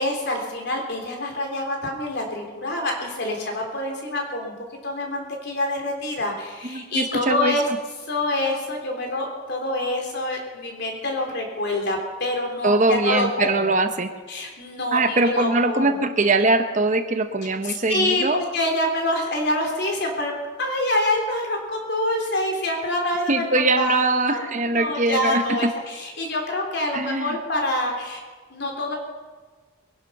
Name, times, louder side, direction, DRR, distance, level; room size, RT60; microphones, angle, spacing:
voice 1, 0.0-4.5 4.8-7.7 8.1-13.7 14.3-16.0 17.6-20.3 20.6-24.5 24.7-28.2 28.5-29.0, left 1 dB, 55° left, 1 dB, 3.6 m, -26 dB
voice 2, 6.7-7.6 12.6-14.1 14.9-18.4 23.3-25.4 26.9-27.4, right 2 dB, 35° right, 8 dB, 0.9 m, -22 dB
22.5 x 11.0 x 5.8 m, 1.4 s
head